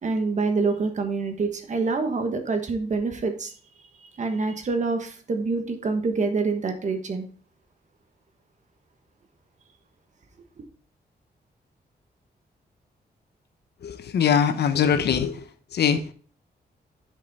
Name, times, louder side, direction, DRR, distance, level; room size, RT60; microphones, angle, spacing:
voice 1, 0.0-3.5 4.2-7.3, right 4 dB, 45° right, 6 dB, 1.4 m, -26 dB
voice 2, 13.8-15.4 15.7-16.1, left 7 dB, 70° left, 10 dB, 0.9 m, -22 dB
10.0 x 5.4 x 4.2 m, 0.43 s
wide cardioid pair, 155°, 17 cm